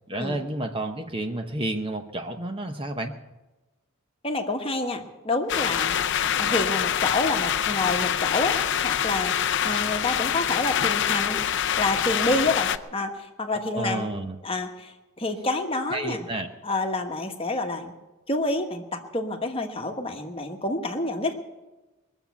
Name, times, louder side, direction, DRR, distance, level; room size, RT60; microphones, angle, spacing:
voice 1, 0.1-3.1 13.7-14.4 15.9-16.5, right 1 dB, 25° right, 5 dB, 0.8 m, -30 dB
voice 2, 4.2-5.9 6.3-8.6 8.8-11.4 11.8-14.1 14.4-16.3 16.6-17.9 18.3-21.3, left 2 dB, 25° left, 5 dB, 1.2 m, -28 dB
sound 1, 5.5-12.8, left 9 dB, 55° left, 0.5 m, -25 dB
22.0 x 7.3 x 8.2 m, 1.1 s
head